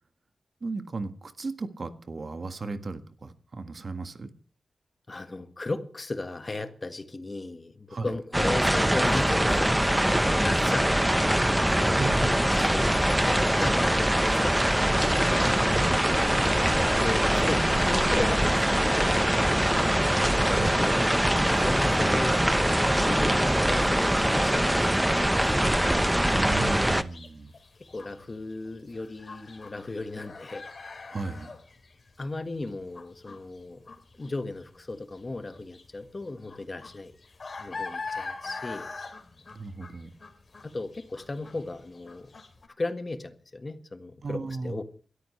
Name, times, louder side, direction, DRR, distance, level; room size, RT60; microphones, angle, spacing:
voice 1, 0.6-4.3 7.9-8.2 12.0-12.6 15.7-16.2 20.6-20.7 26.3-27.5 31.1-31.5 39.5-40.1 44.2-44.8, right 3 dB, 55° right, 1.6 m, -35 dB
voice 2, 5.1-11.4 11.8-12.3 12.6-15.2 17.0-19.3 20.4-21.1 21.5-25.5 27.9-30.6 32.2-33.8 34.1-37.1 37.6-38.9 40.6-42.3 42.8-44.8, left 2 dB, 35° left, 1.6 m, -36 dB
sound 1, 8.3-27.0, right 1 dB, 10° right, 1.0 m, -23 dB
sound 2, 25.6-42.7, left 4 dB, 55° left, 3.2 m, -43 dB
29.0 x 13.5 x 3.3 m
cardioid pair, 75°, 0 cm